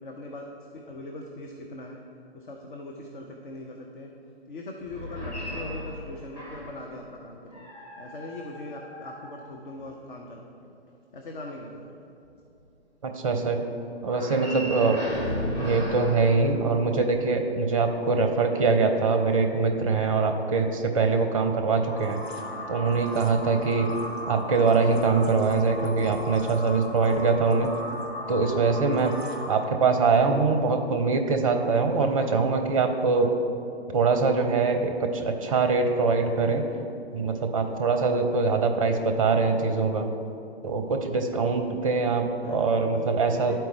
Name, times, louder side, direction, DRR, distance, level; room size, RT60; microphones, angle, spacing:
voice 1, 0.0-2.0 2.3-4.1 4.5-7.7 8.0-10.7 11.1-12.1 42.4-43.6, left 1 dB, 50° left, 1 dB, 0.7 m, -41 dB
sound 1, 4.8-6.9 7.5-9.9 14.0-17.2, equal, 10° left, 0.8 m, -36 dB
voice 2, 13.0-13.6 14.0-15.0 15.6-22.2 22.7-24.0 24.3-27.7 28.3-29.1 29.5-33.3 33.9-36.6 37.1-40.1 40.6-43.6, right 4 dB, 30° right, 6 dB, 0.5 m, -23 dB
sound 2, 21.8-29.9, left 1 dB, 70° left, 1.3 m, -37 dB
11.5 x 4.4 x 3.2 m, 2.7 s
figure-of-eight pair, 130°, 33 cm